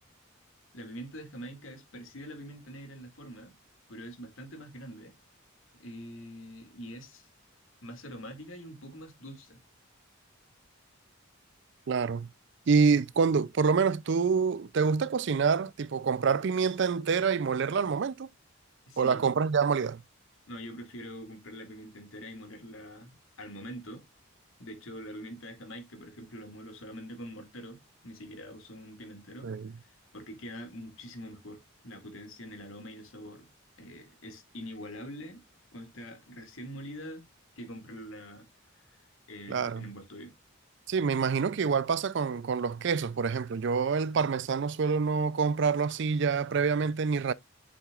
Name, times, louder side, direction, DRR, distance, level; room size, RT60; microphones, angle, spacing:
voice 1, 0.7-3.5 3.9-5.1 5.7-7.3 7.8-9.6 18.9-19.2 20.5-24.1 24.6-33.5 33.8-35.4 35.7-37.3 37.6-38.5 38.7-39.0 39.3-40.3, equal, 70° left, 2.2 m, -44 dB
voice 2, 11.9-12.3 12.7-18.3 19.0-20.0 29.4-29.7 39.5-39.8 40.9-47.3, right 5 dB, 55° right, 0.4 m, -27 dB
7.5 x 6.7 x 2.4 m
head